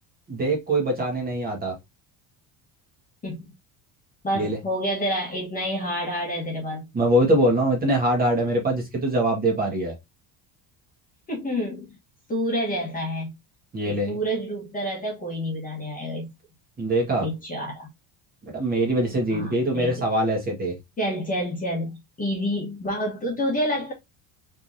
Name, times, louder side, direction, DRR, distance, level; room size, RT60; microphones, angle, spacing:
voice 1, 0.3-1.7 4.3-4.6 6.9-9.9 13.7-14.2 16.8-17.3 18.4-20.8, right 1 dB, 20° right, 1.6 m, -23 dB
voice 2, 4.2-6.9 11.3-11.9 12.3-13.3 13.9-16.3 17.2-17.9 19.3-20.0 21.0-23.9, equal, 20° left, 1.4 m, -28 dB
4.6 x 3.5 x 2.8 m
cardioid pair, 165°, 44 cm